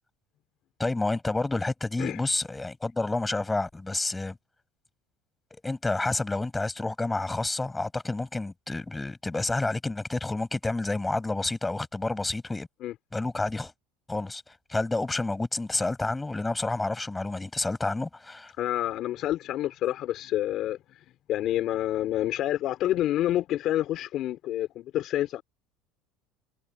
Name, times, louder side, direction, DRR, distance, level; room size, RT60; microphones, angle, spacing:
voice 1, 0.8-4.4 5.6-12.7 13.1-13.7 14.1-18.5, left 2 dB, 10° left, 7.2 m, -29 dB
voice 2, 18.6-21.0 21.3-25.4, left 13 dB, 55° left, 3.1 m, -28 dB
supercardioid pair, 115°, 0 cm